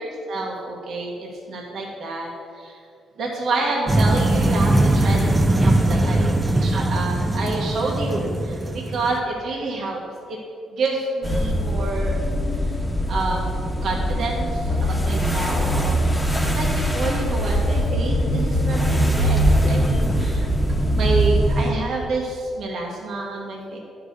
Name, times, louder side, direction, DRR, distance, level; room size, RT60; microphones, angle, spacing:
voice 1, 0.0-2.3 2.5-2.8 3.2-10.0 10.3-10.4 10.7-12.1 12.6-12.8 13.1-16.0 16.2-20.5 20.9-23.8, right 2 dB, 65° right, -2 dB, 1.4 m, -28 dB
sound 1, 3.9-9.2, right 1 dB, 20° right, 0.7 m, -20 dB
sound 2, 11.2-21.7, equal, 10° left, 1.3 m, -21 dB
10.0 x 4.9 x 6.6 m, 2.4 s
cardioid pair, 90°, 0 cm